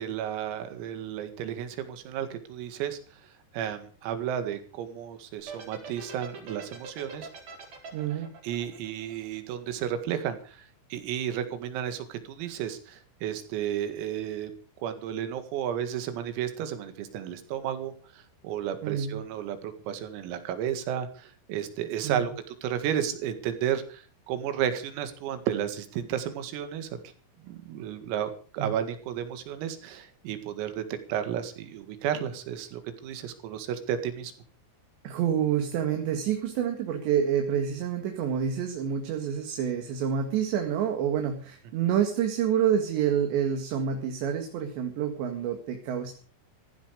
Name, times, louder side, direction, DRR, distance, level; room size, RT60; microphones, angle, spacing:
voice 1, 0.0-3.0 3.5-7.3 8.4-10.7 10.9-14.5 14.8-27.0 27.4-30.8 31.1-34.3, right 9 dB, 85° right, 9 dB, 4.6 m, -33 dB
sound 1, 5.4-9.7, right 4 dB, 40° right, 5.4 m, -43 dB
voice 2, 7.9-8.3 18.8-19.2 22.0-22.2 28.6-28.7 35.0-46.1, right 8 dB, 65° right, 5 dB, 3.9 m, -28 dB
15.5 x 15.5 x 5.1 m, 0.40 s
omnidirectional pair, 6.0 m